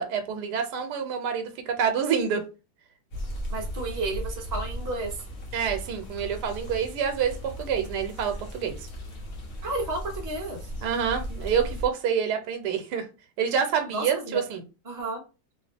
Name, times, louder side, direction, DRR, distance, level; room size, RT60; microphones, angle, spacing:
voice 1, 0.0-2.4 5.5-8.8 10.8-13.1 13.4-14.6, right 7 dB, 85° right, 1.2 m, -27 dB
sound 1, 3.1-11.9, equal, 55° left, 1.2 m, -37 dB
voice 2, 3.5-5.2 9.6-10.7 13.9-14.4 14.8-15.2, right 2 dB, 20° right, 0.5 m, -32 dB
2.9 x 2.8 x 3.3 m
omnidirectional pair, 1.8 m